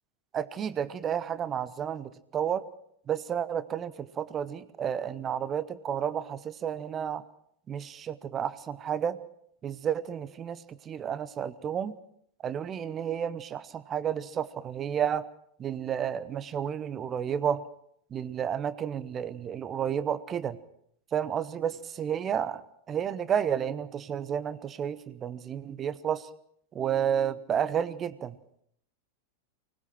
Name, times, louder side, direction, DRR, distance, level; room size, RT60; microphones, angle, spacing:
voice 1, 0.3-2.6 3.1-7.2 7.7-9.2 9.6-11.9 12.4-15.3 15.6-17.6 18.1-20.6 21.1-26.3 26.7-28.4, right 8 dB, 25° right, 16 dB, 1.1 m, -31 dB
24.5 x 20.0 x 6.1 m, 0.67 s
figure-of-eight pair, 90°, 0 cm